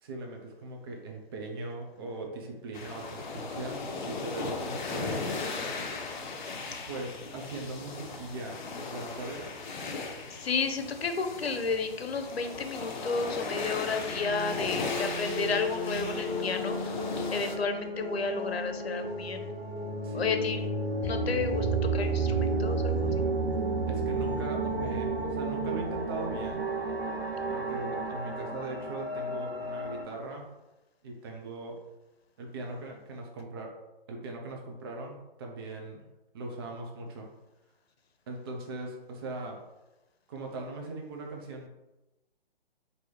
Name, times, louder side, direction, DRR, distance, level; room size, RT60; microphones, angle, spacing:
voice 1, 0.0-5.3 6.9-9.5 20.0-20.4 23.9-26.6 27.5-30.5 31.0-31.8 32.4-33.8 34.1-36.0 36.3-37.3 38.3-39.6 40.3-41.7, right 2 dB, 25° right, 1 dB, 0.4 m, -40 dB
sound 1, 2.7-17.6, left 3 dB, 50° left, 0.7 m, -37 dB
voice 2, 10.3-16.8 17.3-19.5 20.1-20.7 21.0-21.7 21.9-23.2, left 4 dB, 85° left, 7 dB, 0.7 m, -32 dB
sound 2, 14.0-30.0, right 2 dB, 90° right, 0.9 m, -32 dB
4.6 x 2.7 x 3.1 m, 1.0 s
hypercardioid pair, 140°, 30 cm